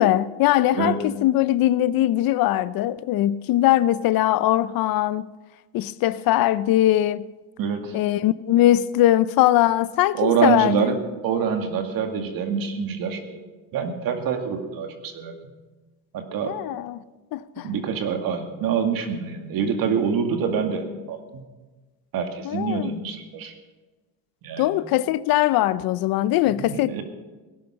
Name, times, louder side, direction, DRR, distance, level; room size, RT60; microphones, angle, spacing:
voice 1, 0.0-5.3 5.7-7.3 7.9-10.9 16.4-17.0 17.3-17.7 22.4-22.9 24.6-27.0, left 14 dB, 60° left, 0.6 m, -21 dB
voice 2, 7.6-8.0 10.2-11.0 11.2-13.4 13.7-15.4 16.1-16.6 17.6-21.4 22.1-23.5 24.4-24.7 26.5-27.0, right 6 dB, 55° right, 2.2 m, -26 dB
18.0 x 10.5 x 5.7 m
cardioid pair, 130°, 41 cm